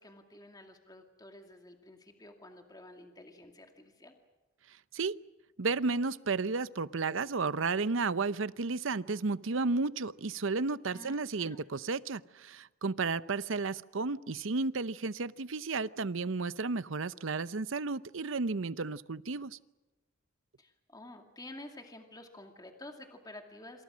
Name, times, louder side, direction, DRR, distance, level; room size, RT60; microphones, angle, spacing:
voice 1, 0.0-4.1 10.9-11.6 20.6-23.8, left 1 dB, 20° left, 4 dB, 2.4 m, -50 dB
voice 2, 5.6-19.6, right 4 dB, 70° right, 16 dB, 0.7 m, -33 dB
27.5 x 27.0 x 6.3 m, 1.1 s
head